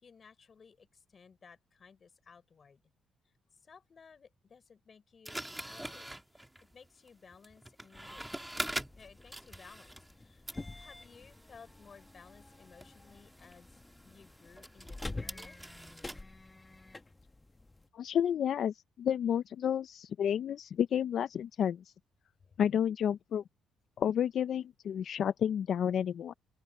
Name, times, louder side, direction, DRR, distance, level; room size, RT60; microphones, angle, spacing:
voice 1, 0.0-2.8 3.2-3.3 3.6-8.3 8.9-15.6 22.4-22.6, left 5 dB, 40° left, 5.2 m, -58 dB
sound 1, 5.3-10.2 10.5-16.2, right 1 dB, 5° right, 2.0 m, -44 dB
sound 2, 7.9-17.9, left 2 dB, 20° left, 1.5 m, -48 dB
voice 2, 17.9-21.8 22.6-23.4 24.0-26.3, left 9 dB, 65° left, 0.5 m, -31 dB
open air
cardioid pair, 90°, 0 cm